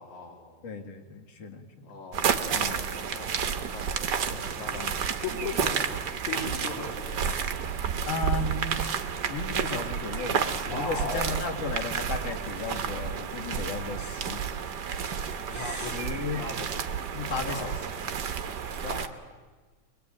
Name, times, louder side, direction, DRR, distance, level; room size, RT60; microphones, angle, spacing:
voice 1, 0.0-0.8 1.8-5.8 6.3-7.4 10.6-11.4 15.5-16.7 17.4-17.7 18.8-19.2, left 3 dB, 85° left, -1 dB, 4.1 m, -38 dB
voice 2, 0.6-1.9 2.5-2.8 4.3-5.0 8.1-14.4 14.9-16.4 17.1-17.8, left 4 dB, 55° left, 4 dB, 3.0 m, -35 dB
sound 1, 2.1-19.1, right 7 dB, 55° right, 1.2 m, -31 dB
23.0 x 21.0 x 8.9 m, 1.4 s
omnidirectional pair, 3.3 m